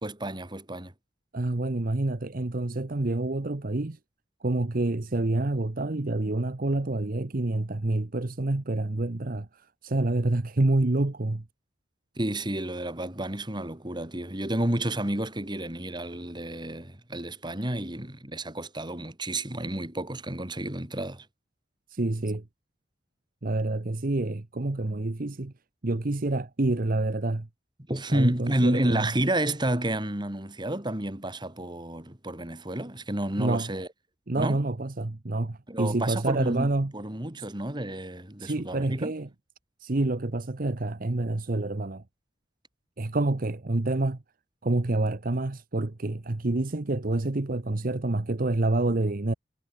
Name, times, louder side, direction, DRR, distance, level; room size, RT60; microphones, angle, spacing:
voice 1, 0.0-0.9 12.2-21.2 27.9-33.9 34.4-34.6 35.7-39.1, right 1 dB, 25° right, 2.6 m, -30 dB
voice 2, 1.3-4.0 4.4-9.5 9.8-11.4 21.9-22.4 23.4-25.5 25.8-27.5 28.1-29.1 33.4-33.7 34.3-36.9 37.4-37.5 38.4-39.3 39.8-42.0 43.0-44.2 44.6-49.3, right 2 dB, 50° right, 1.0 m, -27 dB
head